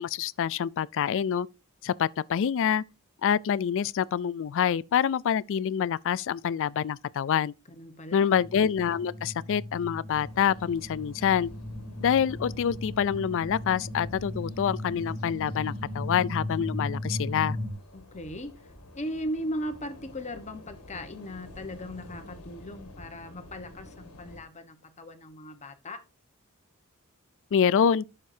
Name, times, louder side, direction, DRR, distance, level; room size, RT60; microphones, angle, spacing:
voice 1, 0.0-1.5 1.8-2.8 3.2-7.5 8.1-11.5 12.0-17.6 27.5-28.0, left 8 dB, 60° left, 0.3 m, -26 dB
voice 2, 7.7-8.3 17.9-18.5 18.9-26.0, equal, 30° left, 1.1 m, -38 dB
sound 1, 8.3-17.7, left 1 dB, 10° right, 1.2 m, -37 dB
sound 2, 10.1-24.4, left 1 dB, 90° left, 1.7 m, -50 dB
11.5 x 6.6 x 2.7 m
head